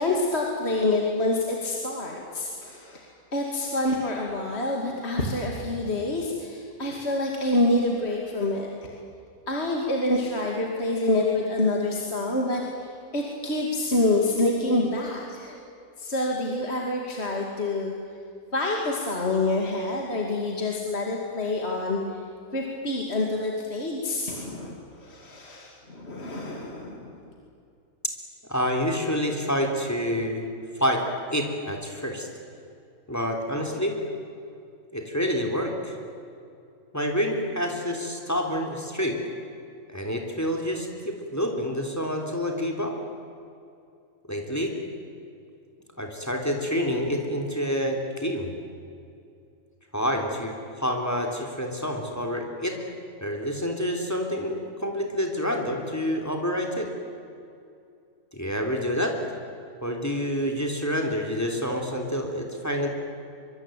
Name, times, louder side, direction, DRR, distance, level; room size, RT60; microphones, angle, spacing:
voice 1, 0.0-3.1 3.3-8.9 9.5-15.6 16.0-17.9 18.5-22.2 22.5-27.2, left 2 dB, 45° left, -1 dB, 2.9 m, -27 dB
voice 2, 28.5-30.5 30.8-31.0 31.3-32.3 33.1-34.0 34.9-35.9 36.9-39.2 39.9-42.9 44.3-44.7 46.0-48.5 49.9-50.5 50.8-52.8 53.2-54.5 54.8-56.9 58.3-59.1 59.8-62.9, equal, 10° left, 3 dB, 3.4 m, -28 dB
24.5 x 24.0 x 9.2 m, 2.5 s
omnidirectional pair, 1.5 m